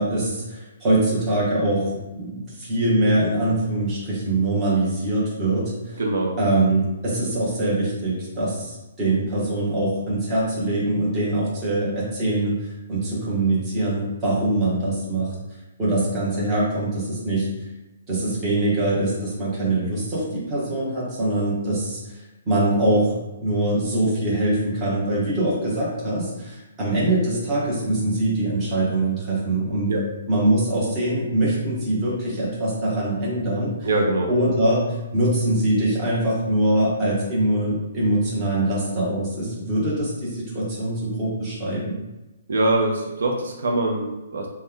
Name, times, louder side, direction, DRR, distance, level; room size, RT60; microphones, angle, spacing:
voice 1, 0.0-5.7 6.4-15.3 15.8-17.5 18.1-22.0 22.5-23.1 23.4-29.9 30.3-33.7 34.3-34.8 35.1-42.0, right 1 dB, 15° right, -8 dB, 0.9 m, -23 dB
voice 2, 6.0-6.3 29.9-30.0 33.8-34.3 42.5-44.5, right 2 dB, 70° right, 1 dB, 0.5 m, -23 dB
3.0 x 2.2 x 3.7 m, 1.1 s
hypercardioid pair, 175°, 0 cm